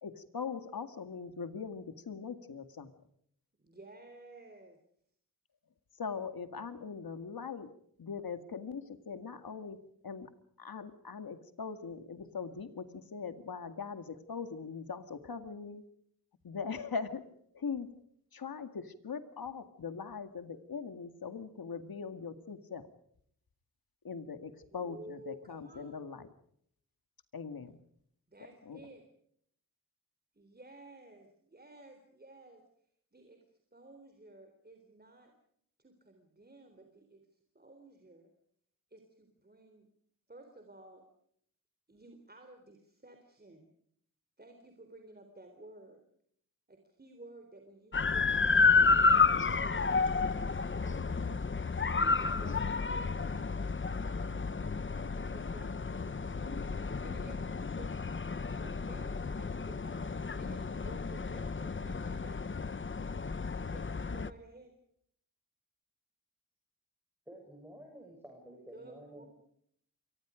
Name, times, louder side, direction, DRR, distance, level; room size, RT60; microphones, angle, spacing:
voice 1, 0.0-2.9 6.0-7.7 8.0-10.3 10.6-15.8 16.4-17.2 17.5-17.9 18.3-22.9 24.0-26.3 27.3-27.8 28.7-28.8, left 5 dB, 80° left, 9 dB, 2.1 m, -41 dB
voice 2, 3.6-4.8 24.7-26.0 28.3-29.1 30.3-32.6 33.1-33.4 33.7-35.3 35.8-37.2 37.5-38.3 38.9-39.9 40.3-41.0 41.9-43.7 44.4-46.0 46.7-48.8 50.3-51.7 52.2-53.7 55.3-57.9 58.6-62.6 63.7-64.7 68.7-69.3, right 2 dB, 25° right, 5 dB, 3.7 m, -54 dB
sound 1, 47.9-64.3, left 4 dB, 35° left, 0.9 m, -31 dB
voice 3, 67.3-69.3, right 1 dB, 5° right, 1 dB, 7.4 m, -51 dB
28.5 x 25.0 x 5.1 m, 0.67 s
wide cardioid pair, 100°, 35 cm